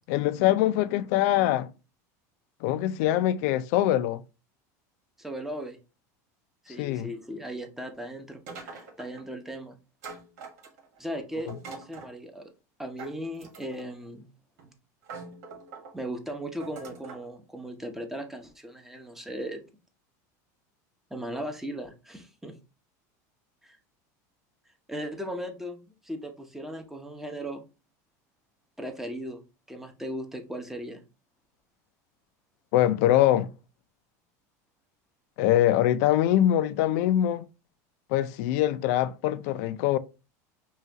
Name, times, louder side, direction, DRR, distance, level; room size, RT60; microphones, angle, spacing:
voice 1, 0.1-1.7 2.6-4.2 6.8-7.1 11.5-11.6 32.7-33.5 35.4-37.4 38.1-40.0, left 13 dB, 70° left, 0.4 m, -23 dB
voice 2, 5.2-5.8 6.6-9.8 11.0-12.5 12.8-14.3 15.9-19.6 21.1-22.6 23.6-23.8 24.9-27.6 28.8-29.4 29.7-31.0, equal, 5° right, 0.8 m, -37 dB
sound 1, 8.5-9.3 10.0-11.0 11.5-12.1 13.0-13.9 14.6-14.7 15.0-15.9 16.6-17.3, right 4 dB, 80° right, 1.6 m, -43 dB
5.5 x 2.4 x 2.9 m
supercardioid pair, 130°, 9 cm